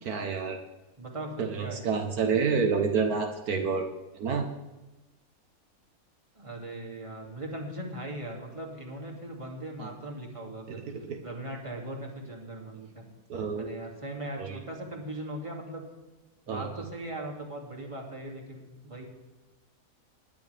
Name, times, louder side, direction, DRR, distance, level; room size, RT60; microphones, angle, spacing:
voice 1, 0.0-0.6 1.4-3.9 4.1-4.5 9.8-9.9 10.7-11.2 13.3-13.7 14.4-14.6 16.5-16.7, right 5 dB, 75° right, 3 dB, 1.5 m, -29 dB
voice 2, 1.0-1.8 6.3-10.8 11.2-13.1 13.5-15.8 16.4-19.0, right 1 dB, 20° right, -1 dB, 2.6 m, -39 dB
20.0 x 10.5 x 3.5 m, 1.1 s
omnidirectional pair, 1.6 m